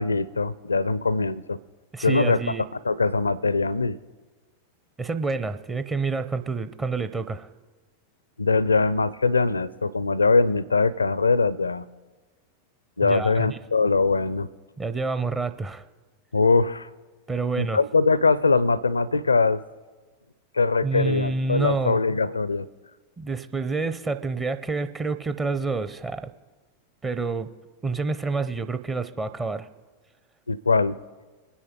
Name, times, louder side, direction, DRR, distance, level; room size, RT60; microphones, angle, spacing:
voice 1, 0.0-1.6 2.0-2.4 2.8-4.0 8.4-11.9 13.0-14.5 16.3-16.9 17.6-19.6 20.5-22.7 30.5-30.9, left 4 dB, 80° left, 21 dB, 0.4 m, -22 dB
voice 2, 1.9-2.6 5.0-7.5 13.0-13.6 14.8-15.8 17.3-17.8 20.8-22.0 23.2-26.3 27.0-27.5 27.8-29.7, right 4 dB, 15° right, 11 dB, 0.6 m, -28 dB
22.5 x 9.9 x 3.7 m, 1.3 s
figure-of-eight pair, 90°, 0 cm